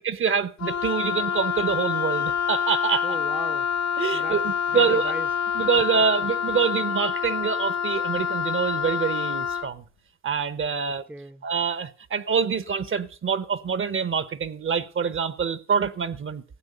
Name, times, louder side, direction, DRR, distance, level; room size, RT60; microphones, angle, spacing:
voice 1, 0.0-3.1 4.0-5.1 5.5-9.8 10.2-11.0 11.4-16.4, right 6 dB, 45° right, 0.9 m, -25 dB
Wind instrument woodwind instrument, 0.6-9.7, left 7 dB, 65° left, 0.7 m, -27 dB
voice 2, 3.0-3.7 4.1-4.4 4.7-5.3 5.7-5.8 6.2-6.3 10.7-11.5, right 1 dB, 5° right, 0.6 m, -38 dB
15.0 x 8.1 x 6.6 m
cardioid pair, 90°, 30 cm